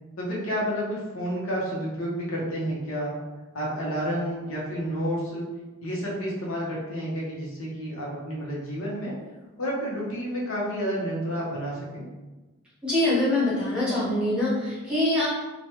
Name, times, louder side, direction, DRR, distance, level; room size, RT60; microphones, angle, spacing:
voice 1, 0.2-3.1 3.5-5.5 5.8-9.1 9.6-12.0, equal, 70° left, -5 dB, 0.8 m, -30 dB
voice 2, 12.8-15.3, left 1 dB, 5° right, -11 dB, 1.1 m, -24 dB
3.0 x 2.2 x 2.9 m, 1.1 s
head